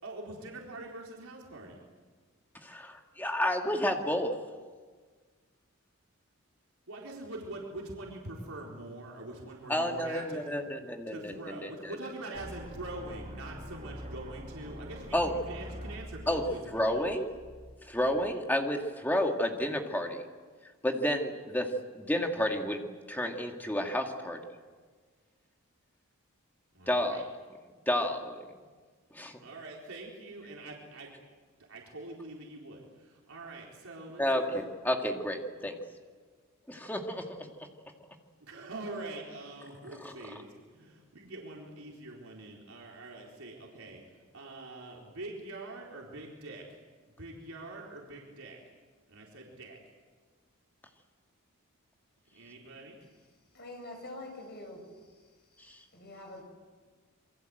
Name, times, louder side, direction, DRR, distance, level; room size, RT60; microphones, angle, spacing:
voice 1, 0.0-1.8 6.9-10.4 11.1-17.1 26.7-27.2 29.4-31.1 31.7-34.5 38.4-44.0 44.3-46.8 47.2-48.6 49.1-49.8 52.3-53.0, right 2 dB, 75° right, -2 dB, 4.3 m, -44 dB
voice 2, 2.6-4.3 9.7-11.7 15.1-15.3 16.3-16.4 16.7-17.3 17.9-20.2 20.8-22.8 23.1-24.4 26.9-27.3 27.9-28.4 29.1-29.3 34.2-35.8 36.7-37.3 40.0-40.1, left 1 dB, 10° left, 2 dB, 2.1 m, -30 dB
sound 1, 12.3-18.3, equal, 30° right, 4.8 m, -45 dB
voice 3, 53.5-54.8 55.9-56.4, left 2 dB, 45° left, 2 dB, 7.4 m, -44 dB
28.0 x 24.0 x 7.9 m, 1.5 s
head